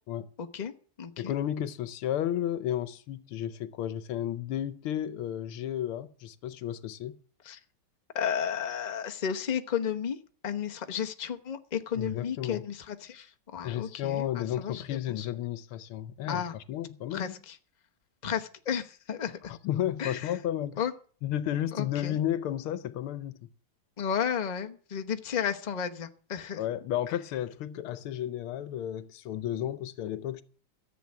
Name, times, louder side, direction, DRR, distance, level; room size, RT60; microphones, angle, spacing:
voice 1, 0.4-0.7 1.0-1.3 7.4-7.6 8.1-10.2 10.4-15.3 16.3-16.5 17.1-17.6 18.2-19.5 20.0-20.3 20.8-20.9 21.7-22.2 24.0-26.6, left 8 dB, 35° left, 0.7 m, -33 dB
voice 2, 1.2-7.2 11.9-12.6 13.6-17.3 19.5-20.8 21.2-23.5 26.5-30.4, left 11 dB, 80° left, 1.7 m, -33 dB
14.0 x 7.6 x 8.6 m
omnidirectional pair, 2.3 m